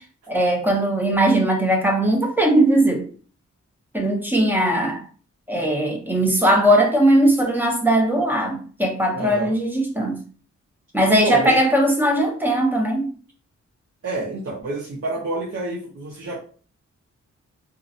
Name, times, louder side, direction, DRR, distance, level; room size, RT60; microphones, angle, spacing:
voice 1, 0.0-3.1 3.9-5.0 5.5-10.2 10.9-13.1, right 1 dB, 5° right, 1 dB, 0.6 m, -19 dB
voice 2, 9.1-9.5 11.2-11.6 14.0-16.4, right 2 dB, 50° right, -4 dB, 0.7 m, -28 dB
2.5 x 2.0 x 2.6 m, 0.41 s
wide cardioid pair, 90°, 29 cm